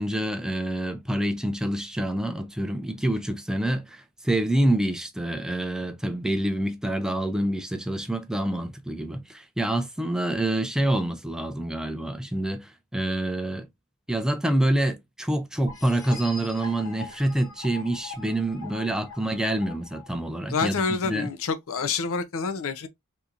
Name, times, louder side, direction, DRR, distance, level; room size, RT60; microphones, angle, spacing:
voice 1, 0.0-13.7 14.1-21.3, right 1 dB, 5° right, 0.4 m, -27 dB
sound 1, 15.7-21.1, left 5 dB, 80° left, 1.8 m, -43 dB
voice 2, 20.5-22.9, left 5 dB, 65° left, 0.6 m, -27 dB
3.5 x 2.8 x 2.4 m
head